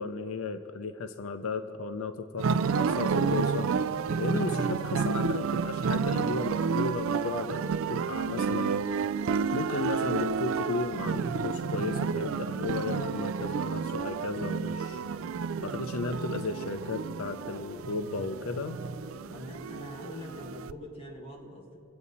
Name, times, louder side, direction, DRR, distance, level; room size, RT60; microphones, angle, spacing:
voice 1, 0.0-3.7 4.2-8.8 9.5-15.0 15.6-18.8, left 4 dB, 85° left, 8 dB, 0.6 m, -34 dB
sound 1, 2.4-20.7, right 6 dB, 70° right, 0.3 m, -30 dB
voice 2, 19.3-21.8, equal, 25° left, -1 dB, 1.7 m, -43 dB
23.5 x 8.5 x 4.1 m, 2.9 s
head